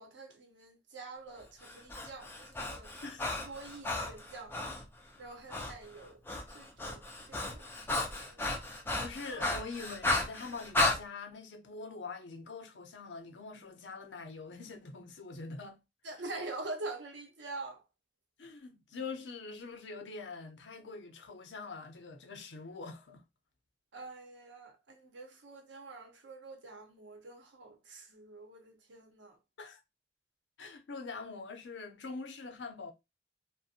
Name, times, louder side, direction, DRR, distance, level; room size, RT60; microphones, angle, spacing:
voice 1, 0.0-2.9 3.5-4.6 5.2-6.2 6.5-7.7 7.9-8.4 16.0-17.8 23.9-29.4, right 2 dB, 85° right, 0.8 m, -46 dB
Breathing, 1.6-4.8 5.5-5.7 6.0-11.0, left 2 dB, 10° left, 0.5 m, -34 dB
voice 2, 3.0-3.3 9.0-15.8 18.4-23.2 29.6-29.8 30.6-32.9, left 4 dB, 80° left, 0.6 m, -44 dB
2.4 x 2.1 x 2.6 m
head